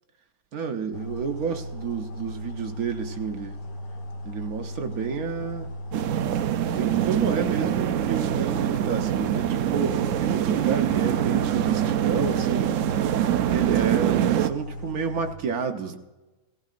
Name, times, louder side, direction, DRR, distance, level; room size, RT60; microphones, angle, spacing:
voice 1, 0.5-3.6 4.2-5.7 6.7-12.7 13.5-16.0, right 6 dB, 60° right, 6 dB, 1.2 m, -30 dB
sound 1, 0.9-15.3, equal, 75° left, 1.8 m, -36 dB
sound 2, 5.9-14.5, right 11 dB, 80° right, 0.7 m, -24 dB
17.5 x 15.5 x 2.5 m, 1.1 s
omnidirectional pair, 1.9 m